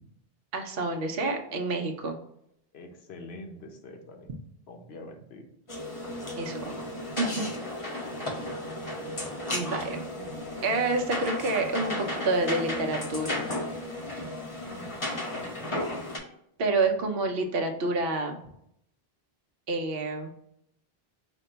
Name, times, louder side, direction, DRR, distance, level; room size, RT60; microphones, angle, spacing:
voice 1, 0.5-2.2 6.4-6.8 7.2-7.3 9.5-10.0 10.6-13.5 14.1-14.3 16.6-18.4 19.7-20.3, right 3 dB, 70° right, 4 dB, 0.9 m, -28 dB
voice 2, 2.7-4.3 4.7-5.5 14.6-15.8, left 2 dB, 85° left, 3 dB, 1.0 m, -45 dB
sound 1, 5.7-16.2, left 1 dB, 30° left, 0.8 m, -34 dB
5.0 x 2.2 x 3.9 m, 0.74 s
omnidirectional pair, 1.0 m